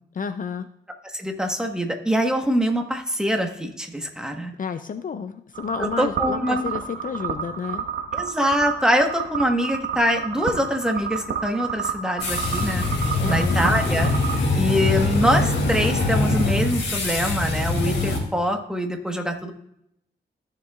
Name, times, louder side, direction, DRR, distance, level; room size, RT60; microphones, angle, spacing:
voice 1, 0.1-0.7 4.6-7.8 13.2-13.7, left 6 dB, 45° left, 10 dB, 0.5 m, -30 dB
voice 2, 1.1-4.5 5.8-6.7 8.1-12.8 13.3-14.1 14.6-19.5, equal, 5° right, 4 dB, 1.2 m, -24 dB
sound 1, 5.5-14.4, right 6 dB, 90° right, 1.1 m, -30 dB
sound 2, 12.2-18.2, left 2 dB, 80° left, 2.7 m, -23 dB
15.0 x 6.7 x 2.4 m, 0.78 s
wide cardioid pair, 110°, 19 cm